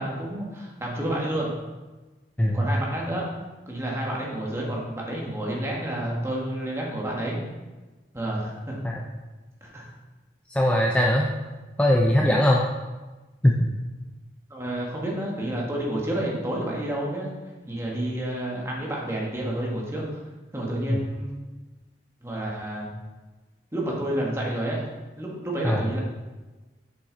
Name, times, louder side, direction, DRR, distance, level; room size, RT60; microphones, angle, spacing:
voice 1, 0.0-1.5 2.5-3.3 3.7-7.4 8.1-8.8 9.6-9.9 14.5-17.3 17.7-20.2 20.5-21.3 22.2-22.9 23.7-24.9 25.2-26.0, right 1 dB, 15° right, -3 dB, 1.6 m, -29 dB
voice 2, 10.5-11.3 11.8-12.6 13.4-13.6 20.9-21.0 25.6-25.8, left 1 dB, 5° left, -1 dB, 0.5 m, -20 dB
7.0 x 6.1 x 4.0 m, 1.2 s
head